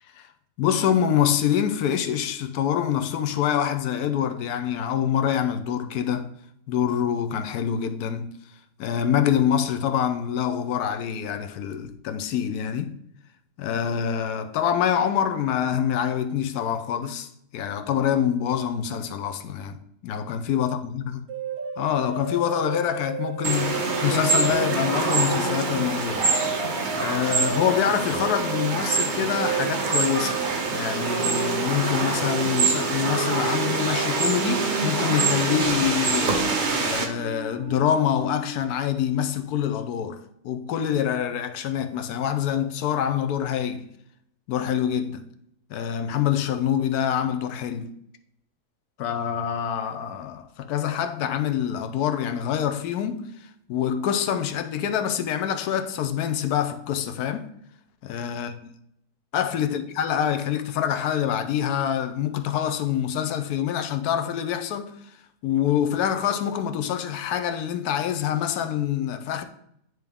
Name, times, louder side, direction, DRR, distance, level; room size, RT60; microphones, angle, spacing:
voice 1, 0.6-6.3 6.7-8.3 8.8-13.0 13.6-19.8 20.0-21.2 21.8-26.3 26.9-30.4 30.7-36.4 36.8-43.9 44.5-45.2 45.7-47.9 49.0-57.5 58.0-58.5 59.3-65.2 65.4-69.4, left 9 dB, 75° left, 1.1 m, -26 dB
sound 1, 21.3-38.7, right 6 dB, 65° right, 1.3 m, -33 dB
bee buzzing, 23.4-37.1, right 4 dB, 45° right, 0.6 m, -25 dB
9.1 x 3.1 x 3.5 m
omnidirectional pair, 1.7 m